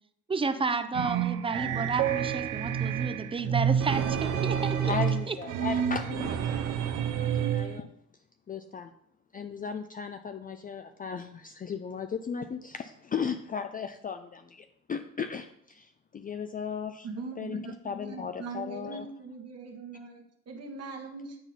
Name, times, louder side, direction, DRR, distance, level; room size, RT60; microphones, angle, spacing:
voice 1, 0.3-4.9 5.3-5.4, right 4 dB, 20° right, 10 dB, 0.6 m, -31 dB
sound 1, 0.9-7.8, right 8 dB, 85° right, 0.8 m, -29 dB
voice 2, 4.8-6.8 7.1-7.9 8.5-8.9 9.3-17.1 17.4-19.1, left 6 dB, 30° left, 8 dB, 0.4 m, -36 dB
voice 3, 17.0-21.4, right 4 dB, 55° right, 2 dB, 1.5 m, -41 dB
9.3 x 4.1 x 4.1 m, 0.72 s
cardioid pair, 90°, 30 cm